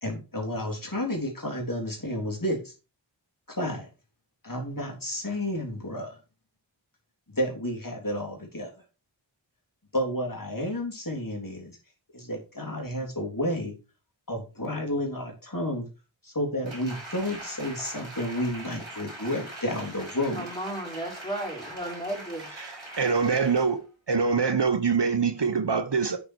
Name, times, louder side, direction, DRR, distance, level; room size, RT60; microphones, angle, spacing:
voice 1, 0.0-2.7 3.5-3.9 4.4-6.2 7.3-8.7 9.9-11.8 12.1-13.7 14.3-15.9 16.2-20.5, left 1 dB, 45° left, 3.5 m, -31 dB
Applause, 16.7-23.8 24.2-24.3, right 1 dB, 85° right, 5.6 m, -42 dB
voice 2, 20.3-22.5, right 1 dB, 10° left, 5.1 m, -34 dB
voice 3, 22.5-23.8 24.1-26.2, right 5 dB, 60° right, 1.0 m, -24 dB
9.1 x 7.1 x 4.7 m
wide cardioid pair, 45°, 46 cm